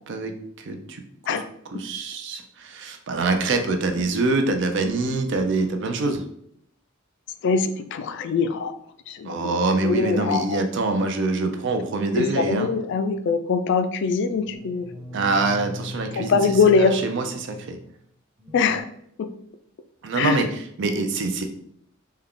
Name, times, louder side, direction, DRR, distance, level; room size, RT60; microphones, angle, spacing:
voice 1, 0.7-1.0 1.3-1.4 1.7-6.2 9.2-12.7 15.1-16.4 16.8-17.8 20.0-20.5 20.8-21.4, right 3 dB, 60° right, 6 dB, 0.5 m, -25 dB
voice 2, 7.4-8.8 9.1-10.6 12.2-14.9 16.1-17.0 18.5-18.8 19.2-19.3 20.2-20.4, left 5 dB, 60° left, 10 dB, 0.3 m, -22 dB
sound 1, 13.1-13.3 14.3-18.0 18.4-18.8, left 1 dB, 15° right, 0.6 m, -40 dB
3.5 x 2.2 x 3.6 m, 0.69 s
head